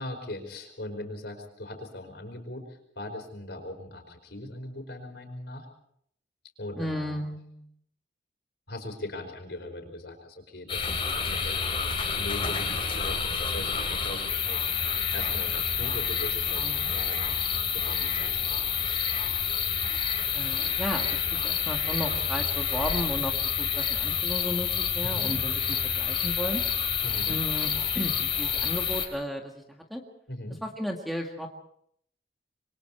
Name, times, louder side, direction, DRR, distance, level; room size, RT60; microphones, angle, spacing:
voice 1, 0.0-5.7 6.6-7.2 8.7-10.9 11.2-11.8 12.1-14.7 15.1-19.2 25.0-25.4 27.0-27.4 30.3-30.6, left 1 dB, 60° left, 5 dB, 5.0 m, -40 dB
voice 2, 6.8-7.7 16.6-16.9 20.3-26.6 27.3-30.0 30.6-31.5, equal, ahead, 0 dB, 1.9 m, -34 dB
sound 1, 10.7-29.1, left 7 dB, 30° left, 4.0 m, -28 dB
26.5 x 23.5 x 4.6 m, 0.69 s
head